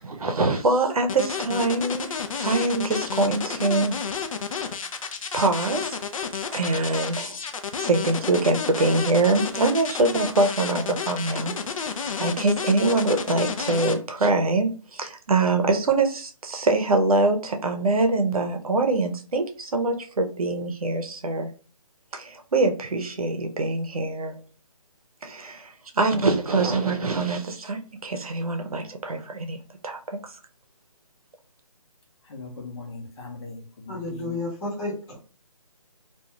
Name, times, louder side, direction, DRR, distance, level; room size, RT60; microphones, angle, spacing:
voice 1, 0.0-4.0 4.5-4.6 5.3-6.0 6.5-7.4 7.8-21.5 22.1-24.4 25.2-29.6 29.8-30.4, right 2 dB, 85° right, 5 dB, 0.6 m, -24 dB
sound 1, 1.1-13.9, left 6 dB, 65° left, 0.5 m, -31 dB
voice 2, 32.3-34.4, left 3 dB, 50° left, 0 dB, 0.9 m, -39 dB
voice 3, 33.9-35.2, left 2 dB, 10° left, -10 dB, 0.7 m, -31 dB
2.4 x 2.3 x 3.0 m, 0.38 s
hypercardioid pair, 165°, 18 cm